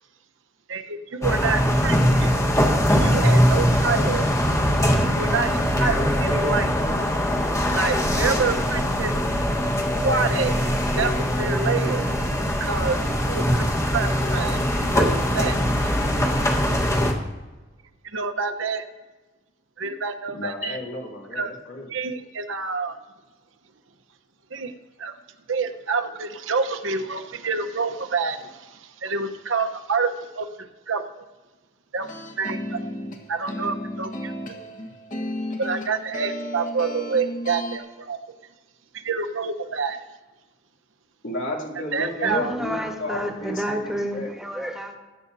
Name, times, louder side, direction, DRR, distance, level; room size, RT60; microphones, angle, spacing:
voice 1, 0.7-2.3 3.0-4.2 5.1-6.7 7.7-9.1 10.0-10.5 11.0-12.1 12.6-13.0 13.2-14.6 14.9-15.1 15.3-15.6 18.1-18.8 19.8-20.8 21.3-21.5 21.9-23.0 24.5-24.7 25.0-25.1 25.5-30.5 30.9-31.1 31.9-32.8 33.3-34.7 35.6-38.2 39.0-40.0 41.9-42.4, right 4 dB, 70° right, 7 dB, 1.0 m, -27 dB
sound 1, 1.2-17.1, equal, 15° left, 1.4 m, -22 dB
voice 2, 20.3-21.9 41.2-44.3, left 1 dB, 65° left, -2 dB, 2.8 m, -32 dB
sound 2, 32.0-37.8, left 1 dB, 40° left, 1.5 m, -33 dB
voice 3, 42.2-45.0, equal, 5° right, 1 dB, 1.4 m, -29 dB
21.0 x 9.7 x 2.7 m, 1.2 s
head